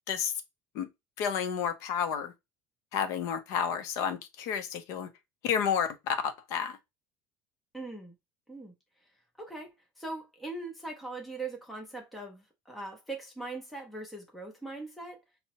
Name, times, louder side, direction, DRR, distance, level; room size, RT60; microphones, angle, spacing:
voice 1, 1.2-2.3 2.9-5.1 5.4-6.8, left 7 dB, 55° left, 0.5 m, -31 dB
voice 2, 7.7-8.1 8.5-8.7 9.4-9.7 10.0-15.2, right 2 dB, ahead, 0.5 m, -40 dB
5.4 x 2.0 x 2.8 m
cardioid pair, 180°, 7 cm